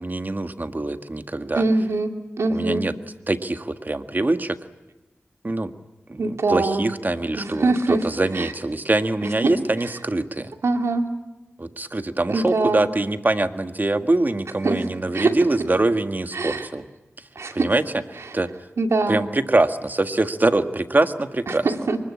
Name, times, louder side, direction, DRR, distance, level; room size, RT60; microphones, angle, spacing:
voice 1, 0.0-1.6 2.5-2.9 3.3-4.6 5.4-5.7 6.1-10.5 11.6-16.9 17.5-17.8 18.3-18.5 19.1-21.7, right 2 dB, 40° right, 8 dB, 1.7 m, -23 dB
voice 2, 1.6-2.1 2.4-2.8 6.2-6.8 7.4-8.0 8.3-8.5 9.2-9.5 10.6-11.1 12.3-12.8 14.6-14.9 15.1-15.3 16.3-16.7 17.4-17.7 18.2-18.3 18.8-19.2 21.5-22.0, right 3 dB, 90° right, 5 dB, 2.3 m, -23 dB
24.5 x 21.0 x 8.7 m, 1.1 s
cardioid pair, 40°, 5 cm